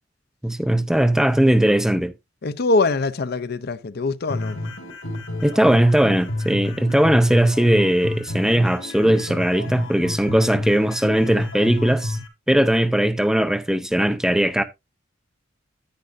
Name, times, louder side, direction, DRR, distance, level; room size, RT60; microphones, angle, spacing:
voice 1, 0.4-2.1 5.4-12.2 12.5-14.6, right 1 dB, 5° right, 0.5 m, -19 dB
voice 2, 2.4-4.6, left 3 dB, 50° left, 0.6 m, -23 dB
sound 1, 4.3-12.3, left 1 dB, 80° left, 2.8 m, -29 dB
10.0 x 9.7 x 2.6 m
head